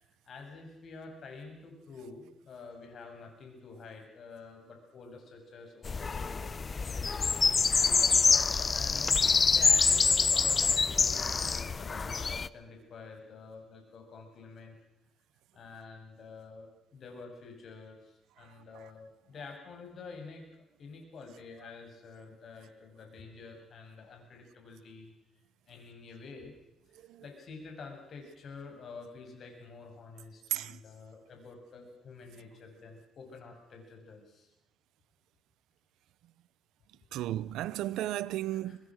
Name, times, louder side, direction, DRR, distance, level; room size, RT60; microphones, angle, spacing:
voice 1, 0.0-8.0 8.7-14.8 15.5-25.1 25.7-26.5 26.9-34.5 38.5-38.8, left 4 dB, 60° left, 7.9 m, -49 dB
sound 1, 5.8-12.5, left 4 dB, 35° left, 0.8 m, -26 dB
voice 2, 30.5-30.8 37.1-38.8, right 14 dB, 90° right, 0.8 m, -34 dB
25.5 x 20.5 x 6.5 m
cardioid pair, 90°, 0 cm